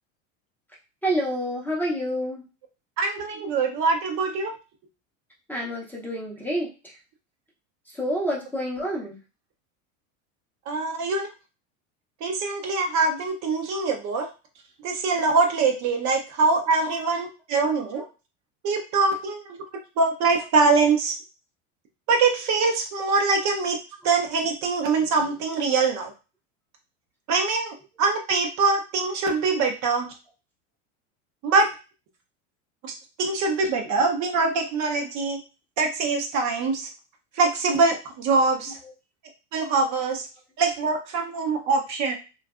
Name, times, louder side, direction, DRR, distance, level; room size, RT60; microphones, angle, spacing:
voice 1, 1.0-2.4 5.5-6.9 7.9-9.2 16.8-16.9 18.0-18.1 23.4-23.5, equal, 5° left, -5 dB, 0.6 m, -28 dB
voice 2, 3.0-4.5 10.7-11.3 12.2-14.3 14.8-18.0 18.6-19.6 20.0-21.1 22.1-23.8 24.0-26.1 27.3-30.1 31.4-31.7 32.8-35.4 35.8-36.9 37.4-38.8 39.5-40.3 40.6-42.2, right 4 dB, 45° right, 3 dB, 0.7 m, -23 dB
2.5 x 2.3 x 2.3 m, 0.31 s
supercardioid pair, 105°, 39 cm